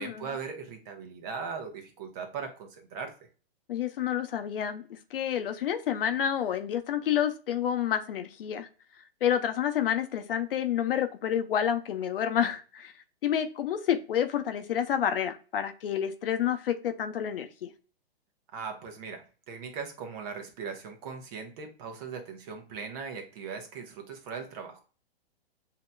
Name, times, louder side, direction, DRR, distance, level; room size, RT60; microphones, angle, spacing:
voice 1, 0.0-3.1 18.5-24.8, right 5 dB, 40° right, 4 dB, 1.1 m, -39 dB
voice 2, 3.7-8.7 9.2-12.9 13.2-17.7, left 9 dB, 60° left, 9 dB, 0.7 m, -29 dB
7.0 x 2.9 x 2.2 m, 0.36 s
hypercardioid pair, 145°, 32 cm